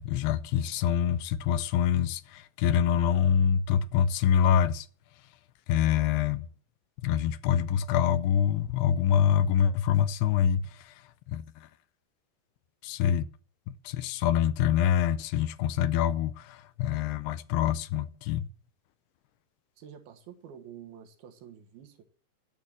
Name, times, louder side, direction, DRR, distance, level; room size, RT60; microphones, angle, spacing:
voice 1, 0.0-4.9 5.7-6.5 7.0-10.9 11.3-11.4 12.8-13.3 13.9-18.5, left 9 dB, 85° left, 2.7 m, -25 dB
voice 2, 19.8-22.0, right 9 dB, 70° right, 3.1 m, -48 dB
11.0 x 8.2 x 7.3 m
omnidirectional pair, 4.6 m